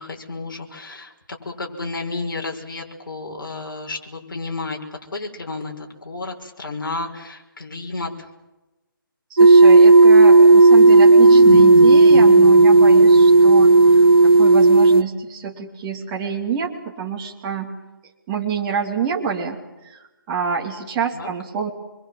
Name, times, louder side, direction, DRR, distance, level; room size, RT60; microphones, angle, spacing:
voice 1, 0.0-4.8 5.1-8.3 21.1-21.3, left 3 dB, 65° left, 1 dB, 5.6 m, -32 dB
voice 2, 9.3-14.0 14.4-17.7 18.3-19.6 19.8-20.0 20.3-21.7, right 6 dB, 20° right, -1 dB, 2.8 m, -27 dB
sound 1, 9.4-15.0, right 3 dB, 90° right, 1.5 m, -10 dB
sound 2, 10.8-15.3, left 6 dB, 40° left, 2.6 m, -30 dB
26.5 x 23.0 x 7.6 m, 1.1 s
figure-of-eight pair, 160°, 12 cm